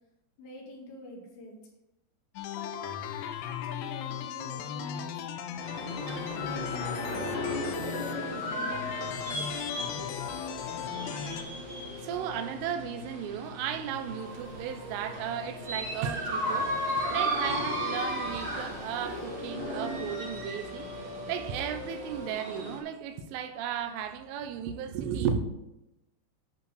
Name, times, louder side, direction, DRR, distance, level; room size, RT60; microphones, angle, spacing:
voice 1, 0.4-1.6 2.5-5.2 6.4-9.4, left 1 dB, 70° left, 4.1 m, -45 dB
sound 1, 2.4-11.4, left 9 dB, 85° left, 3.2 m, -37 dB
sound 2, 5.6-22.8, equal, 40° right, 1.8 m, -36 dB
sound 3, 5.9-22.3, equal, 60° right, 3.0 m, -44 dB
voice 2, 12.0-25.4, right 8 dB, 85° right, 3.2 m, -35 dB
11.0 x 4.3 x 6.5 m
omnidirectional pair, 5.6 m